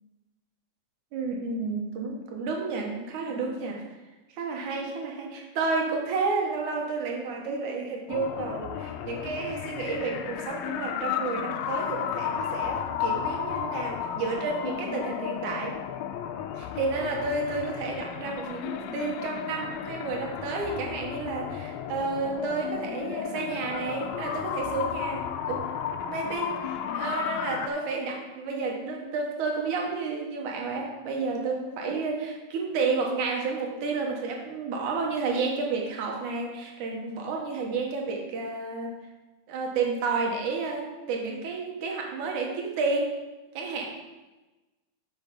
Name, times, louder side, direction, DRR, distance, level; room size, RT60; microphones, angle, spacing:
voice 1, 1.1-3.8 4.3-15.8 16.5-25.8 26.1-38.9 39.5-43.2 43.5-43.9, right 4 dB, 75° right, 0 dB, 2.6 m, -31 dB
sound 1, 8.1-27.7, left 9 dB, 80° left, 1.8 m, -33 dB
8.0 x 6.8 x 5.3 m, 1.1 s
omnidirectional pair, 3.6 m